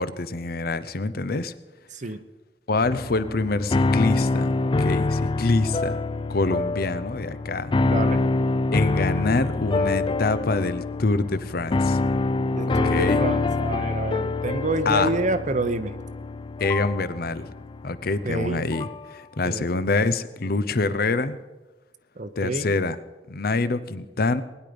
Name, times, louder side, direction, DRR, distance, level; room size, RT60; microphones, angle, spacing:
voice 1, 0.0-1.5 2.7-6.0 6.3-7.7 8.7-12.0 12.7-13.2 14.9-15.1 16.6-17.5 17.8-21.4 22.4-23.0 23.3-24.4, left 3 dB, 60° left, 14 dB, 0.7 m, -25 dB
voice 2, 1.9-2.2 7.8-8.3 12.5-15.9 18.2-18.7 19.4-19.6 22.2-22.7, right 2 dB, 45° right, 11 dB, 0.8 m, -28 dB
sound 1, 2.8-19.1, left 3 dB, 30° left, 0.4 m, -26 dB
20.5 x 10.5 x 5.1 m, 1.1 s
head